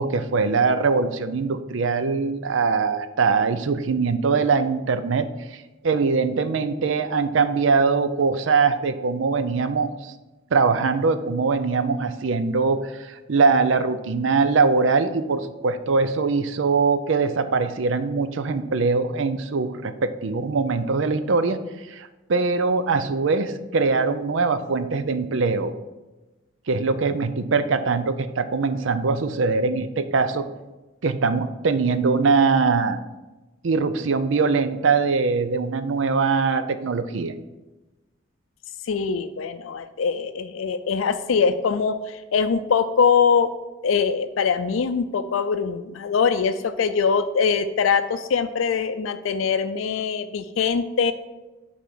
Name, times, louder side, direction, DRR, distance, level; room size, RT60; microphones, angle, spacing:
voice 1, 0.0-10.1 10.5-21.6 21.9-25.7 26.7-30.5 31.0-33.0 33.6-37.3, right 4 dB, 75° right, 11 dB, 0.5 m, -22 dB
voice 2, 38.9-43.5 43.8-51.1, left 6 dB, 85° left, 9 dB, 0.4 m, -22 dB
8.2 x 4.1 x 6.0 m, 1.1 s
head